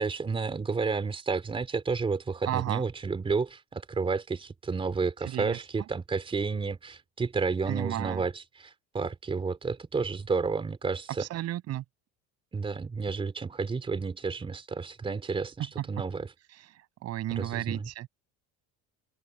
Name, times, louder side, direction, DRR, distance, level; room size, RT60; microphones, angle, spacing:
voice 1, 0.0-11.3 12.5-16.3 17.4-17.9, right 4 dB, 15° right, 3.9 m, -31 dB
voice 2, 2.4-2.8 5.2-5.6 7.7-8.3 11.2-11.8 15.8-15.9 16.5-16.7 17.0-18.1, right 14 dB, 45° right, 7.6 m, -33 dB
cardioid pair, 175°, 35 cm